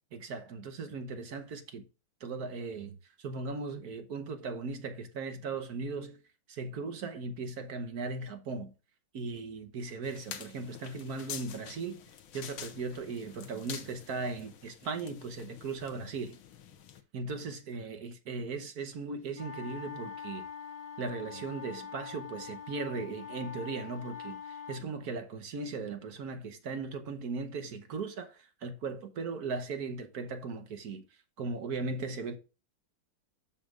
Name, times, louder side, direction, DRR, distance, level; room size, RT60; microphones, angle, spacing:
voice 1, 0.1-1.8 2.2-6.2 6.5-8.7 9.1-12.0 12.3-16.4 17.1-20.4 21.0-31.0 31.4-32.4, right 4 dB, 60° right, 1.3 m, -38 dB
sound 1, 10.0-17.0, left 9 dB, 80° left, 1.7 m, -47 dB
sound 2, 19.3-24.8, left 7 dB, 25° left, 1.6 m, -44 dB
12.5 x 5.1 x 2.4 m
omnidirectional pair, 2.2 m